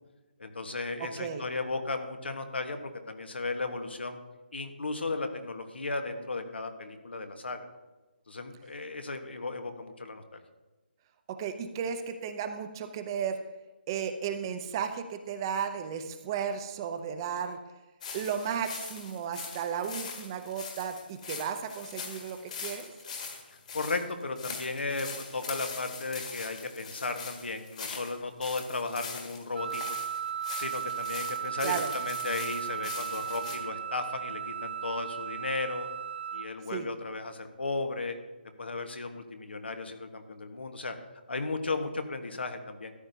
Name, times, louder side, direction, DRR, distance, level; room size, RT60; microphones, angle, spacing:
voice 1, 0.4-4.2 4.5-7.7 8.3-10.4 23.7-30.0 30.5-35.9 36.3-38.2 38.6-41.0 41.3-42.9, left 3 dB, 90° left, 6 dB, 1.4 m, -35 dB
voice 2, 1.0-1.4 11.3-13.4 13.9-17.6 18.1-22.9 31.6-31.9 36.7-36.9, right 7 dB, 25° right, 8 dB, 0.6 m, -34 dB
sound 1, 18.0-33.6, left 5 dB, 45° left, 1.9 m, -42 dB
Wind instrument woodwind instrument, 29.6-36.5, right 9 dB, 70° right, 0.8 m, -36 dB
13.5 x 10.5 x 2.7 m, 1.1 s
hypercardioid pair, 165°, 6 cm